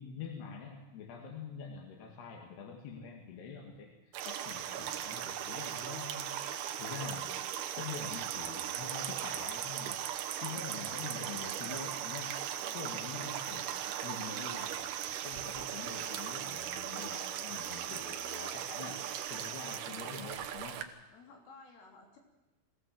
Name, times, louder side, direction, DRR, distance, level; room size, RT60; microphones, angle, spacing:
voice 1, 0.0-6.4 6.8-7.3 7.8-10.0 10.4-12.4 12.7-14.9 15.2-19.0 19.3-20.8, left 5 dB, 60° left, 2 dB, 3.9 m, -45 dB
sound 1, 4.1-20.8, right 9 dB, 70° right, 2.7 m, -40 dB
sound 2, 4.2-19.8, right 12 dB, 85° right, 3.4 m, -42 dB
voice 2, 20.7-22.2, left 4 dB, 85° left, 2 dB, 5.9 m, -56 dB
23.0 x 16.5 x 7.6 m, 1.1 s
omnidirectional pair, 5.5 m